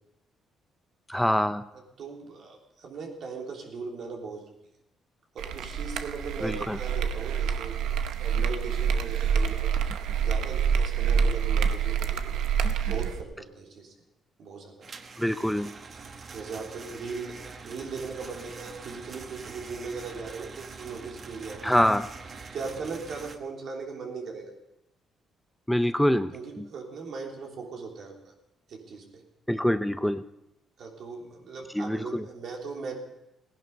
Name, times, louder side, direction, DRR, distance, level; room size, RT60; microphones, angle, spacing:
voice 1, 1.1-1.6 6.4-6.8 12.6-12.7 15.2-15.7 21.6-22.1 25.7-26.6 29.5-30.2 31.7-32.3, equal, 5° left, 11 dB, 0.6 m, -25 dB
voice 2, 2.0-4.5 5.3-9.7 10.2-12.4 12.8-13.9 14.4-14.7 16.3-21.8 22.5-24.5 26.3-28.3 28.7-29.2 30.8-32.9, right 4 dB, 65° right, 0 dB, 3.4 m, -39 dB
sound 1, 5.4-13.2, right 7 dB, 85° right, 0.9 m, -27 dB
sound 2, 14.8-23.4, right 4 dB, 45° right, 1.2 m, -44 dB
16.5 x 11.0 x 5.3 m, 0.88 s
cardioid pair, 90°, 0 cm